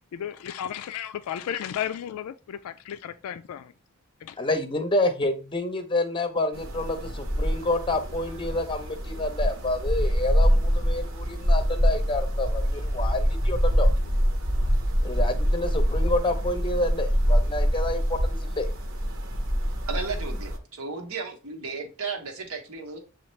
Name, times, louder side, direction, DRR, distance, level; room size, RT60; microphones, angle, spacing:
voice 1, 0.1-3.7 4.2-4.4, left 10 dB, 85° left, 0.3 m, -34 dB
voice 2, 4.4-13.9 15.0-18.7, left 2 dB, 25° left, 0.6 m, -28 dB
sound 1, 6.5-20.6, equal, 65° right, 0.9 m, -25 dB
voice 3, 19.9-23.0, right 4 dB, 90° right, 1.1 m, -34 dB
7.0 x 2.4 x 3.1 m
head